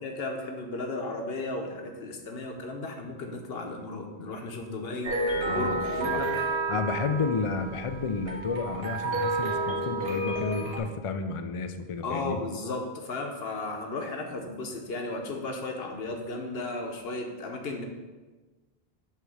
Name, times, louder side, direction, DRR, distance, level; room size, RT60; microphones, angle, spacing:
voice 1, 0.0-5.2 5.4-6.3 6.7-6.8 12.0-17.8, left 2 dB, 70° left, 3 dB, 1.2 m, -35 dB
sound 1, 5.0-10.8, right 2 dB, 70° right, 1.4 m, -30 dB
voice 2, 5.5-6.2 6.7-12.4, left 4 dB, 50° left, 7 dB, 0.4 m, -31 dB
7.8 x 3.4 x 6.3 m, 1.3 s
omnidirectional pair, 1.0 m